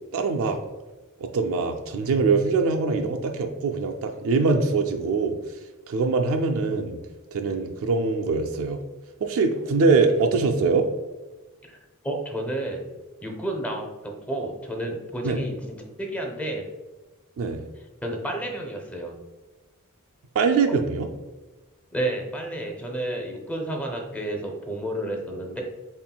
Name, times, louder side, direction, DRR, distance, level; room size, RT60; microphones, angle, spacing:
voice 1, 0.1-0.6 1.2-5.4 5.9-7.0 7.3-8.8 9.2-10.9 15.2-15.4 17.4-17.6 20.4-21.1, right 4 dB, 65° right, 5 dB, 0.3 m, -23 dB
voice 2, 12.0-12.8 13.2-16.7 17.8-19.2 21.9-25.6, right 1 dB, 5° left, 2 dB, 0.6 m, -31 dB
4.3 x 3.5 x 2.3 m, 1.2 s
head